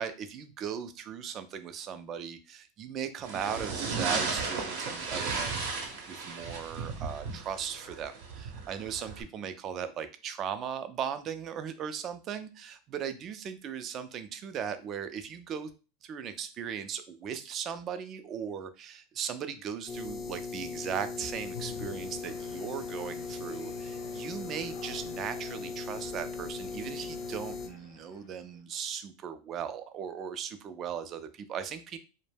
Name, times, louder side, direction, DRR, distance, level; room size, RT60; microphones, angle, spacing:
voice 1, 0.0-5.7 6.1-15.7 16.0-32.0, right 8 dB, 35° right, 10 dB, 0.4 m, -38 dB
sound 1, 3.2-9.2, right 4 dB, 65° right, 0.7 m, -35 dB
sound 2, 19.9-27.7, left 4 dB, 25° left, 0.4 m, -38 dB
sound 3, 21.5-28.6, left 7 dB, 75° left, 0.6 m, -48 dB
2.2 x 2.0 x 3.3 m, 0.32 s
supercardioid pair, 120°, 0 cm